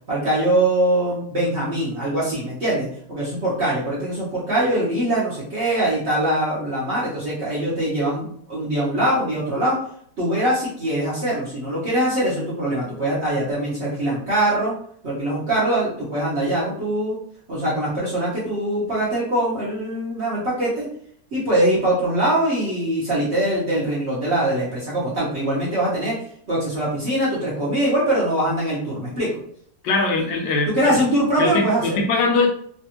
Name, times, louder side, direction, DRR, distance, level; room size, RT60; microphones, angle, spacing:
voice 1, 0.1-9.8 10.2-14.7 15.0-17.2 17.5-20.9 21.3-26.2 26.5-29.3 30.7-32.0, right 1 dB, 50° right, -8 dB, 0.9 m, -22 dB
voice 2, 29.8-30.9 31.4-32.5, left 3 dB, 75° left, 2 dB, 1.2 m, -21 dB
3.3 x 2.4 x 2.8 m, 0.63 s
omnidirectional pair, 2.1 m